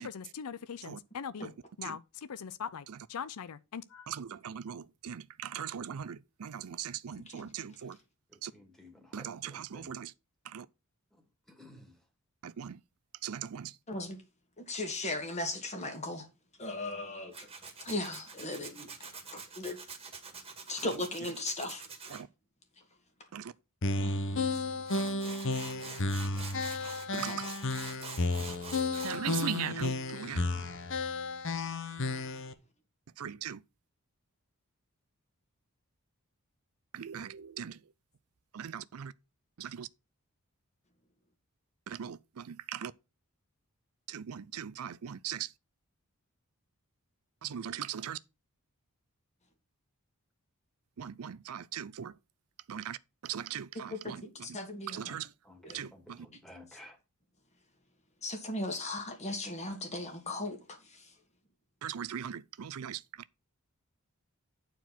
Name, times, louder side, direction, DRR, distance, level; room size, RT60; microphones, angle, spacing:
voice 1, 0.1-1.5 1.8-4.1, left 7 dB, 80° left, 0.5 m, -41 dB
voice 2, 4.1-8.0 8.4-8.5 9.1-10.1 10.4-10.7 12.4-12.8 13.2-13.8 20.9-21.0 22.1-22.3 23.3-23.5 27.1-27.5 28.9-30.5 33.2-33.6 36.9-37.8 38.5-39.1 39.6-39.9 41.9-42.9 44.1-45.5 47.4-48.2 51.0-52.1 52.7-53.0 53.2-54.6 54.9-55.3 55.7-56.3 61.8-63.0, right 8 dB, 70° right, 0.5 m, -39 dB
voice 3, 8.5-9.9 11.6-11.9 55.5-55.6 55.9-56.0 56.4-57.0, left 1 dB, ahead, 2.3 m, -53 dB
voice 4, 13.9-14.2 14.6-16.3 16.6-17.5 17.8-18.9 19.3-19.8 20.7-21.8 24.0-24.6 31.6-31.7 53.9-55.2 55.6-55.8 58.2-61.1, left 2 dB, 30° left, 2.0 m, -37 dB
Tools, 17.3-22.2 24.5-24.6 24.9-29.5, right 5 dB, 25° right, 1.9 m, -46 dB
sound 1, 23.8-32.5, left 3 dB, 60° left, 1.0 m, -33 dB
9.3 x 4.5 x 5.8 m
head